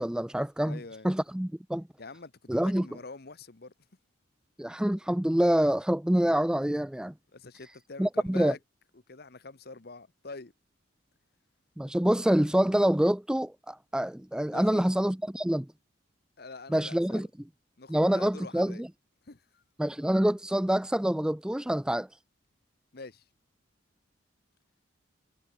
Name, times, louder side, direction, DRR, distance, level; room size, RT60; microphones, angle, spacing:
voice 1, 0.0-0.8 1.0-1.8 2.5-2.9 4.6-7.1 8.0-8.5 11.8-15.7 16.7-17.3 17.9-18.9 19.8-22.1, equal, 5° right, 0.3 m, -26 dB
voice 2, 0.6-1.1 2.0-3.7 7.3-8.6 8.9-10.5 14.5-14.8 16.4-17.3 17.8-18.8 19.3-19.6 22.9-23.2, left 3 dB, 50° left, 1.0 m, -45 dB
head